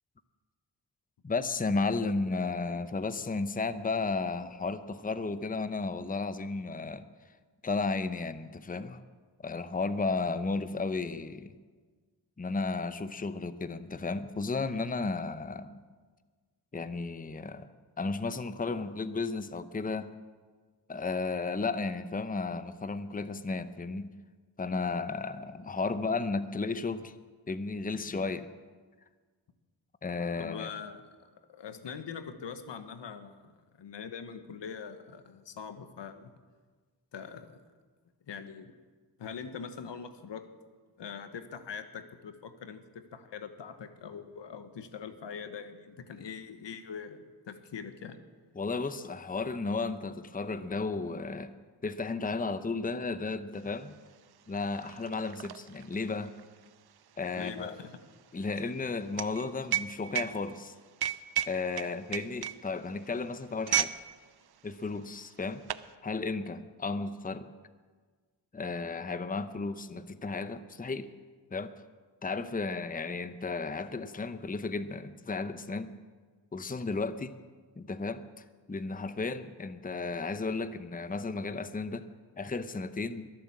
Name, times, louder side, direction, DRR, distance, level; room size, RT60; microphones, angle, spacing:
voice 1, 1.2-7.1 7.6-9.0 9.4-11.5 12.4-15.8 16.7-17.7 18.0-20.1 20.9-24.1 24.6-27.1 27.5-28.5 30.0-30.7 48.6-51.5 51.8-53.9 54.5-56.3 57.2-57.7 58.3-60.7 61.5-63.9 64.6-65.6 66.0-67.5 68.5-71.1 71.5-71.7 72.2-75.9 76.5-77.3 77.8-78.2 78.7-82.0 82.4-83.3, left 3 dB, 20° left, 12 dB, 0.8 m, -33 dB
voice 2, 30.4-36.3 37.1-37.6 38.3-38.7 39.2-40.4 41.0-48.2 57.4-58.0, left 6 dB, 75° left, 9 dB, 1.2 m, -43 dB
sound 1, 53.7-53.8 54.1-64.0 64.3-64.6 65.3-65.9, right 10 dB, 60° right, 0.7 m, -34 dB
21.5 x 7.6 x 7.3 m, 1.5 s
cardioid pair, 50°, 43 cm